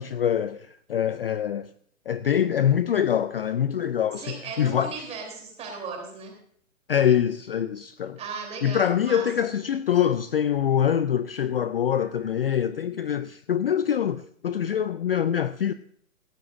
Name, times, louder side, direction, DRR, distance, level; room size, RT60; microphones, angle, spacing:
voice 1, 0.0-1.7 2.1-4.9 6.9-8.2 8.6-15.7, left 9 dB, 45° left, 0.4 m, -24 dB
voice 2, 4.2-6.4 8.2-9.3, right 5 dB, 15° right, 3.4 m, -36 dB
16.5 x 15.5 x 2.6 m
hypercardioid pair, 140°, 42 cm